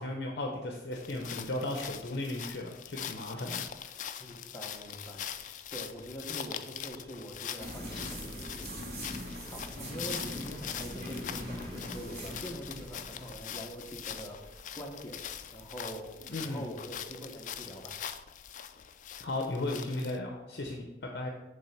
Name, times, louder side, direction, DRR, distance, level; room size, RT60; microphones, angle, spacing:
voice 1, 0.0-4.1 16.3-16.6 19.2-20.9 21.1-21.3, left 2 dB, 65° left, 1 dB, 0.7 m, -36 dB
sound 1, 0.9-20.2, left 9 dB, 45° left, 0.3 m, -43 dB
voice 2, 4.2-5.3 5.7-9.0 9.5-15.2 15.5-16.1 16.4-18.0, equal, 15° left, -1 dB, 1.0 m, -44 dB
sound 2, 7.6-17.7, equal, 60° right, 2.0 m, -43 dB
7.3 x 3.4 x 5.8 m, 1.0 s
head